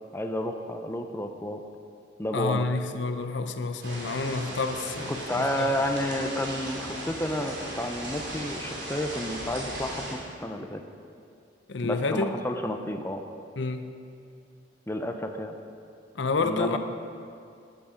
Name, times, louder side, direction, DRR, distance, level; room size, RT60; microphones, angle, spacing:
voice 1, 0.1-1.6 2.2-2.7 4.5-4.6 5.1-10.8 11.8-13.2 14.9-15.5 16.4-16.8, left 1 dB, 15° left, 5 dB, 0.6 m, -31 dB
voice 2, 2.3-5.7 11.7-12.3 13.6-13.9 16.1-16.8, left 3 dB, 75° left, 8 dB, 0.7 m, -29 dB
sound 1, 3.8-10.1, right 1 dB, 70° right, 3.1 m, -37 dB
13.5 x 9.9 x 5.1 m, 2.4 s
head